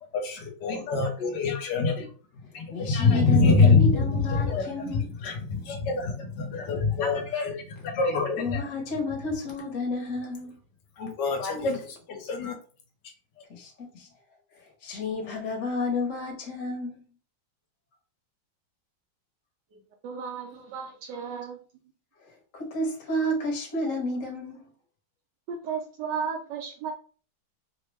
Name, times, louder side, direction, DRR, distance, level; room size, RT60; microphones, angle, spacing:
voice 1, 0.1-2.1 2.5-8.6 11.0-12.6, left 4 dB, 65° left, 1.2 m, -25 dB
voice 2, 2.7-5.0 8.4-10.6 13.5-14.1 14.8-17.0 22.5-24.6, left 2 dB, 50° left, 1.1 m, -31 dB
voice 3, 19.7-21.6 25.5-26.9, right 6 dB, 70° right, 1.1 m, -34 dB
3.3 x 2.1 x 3.1 m
omnidirectional pair, 2.2 m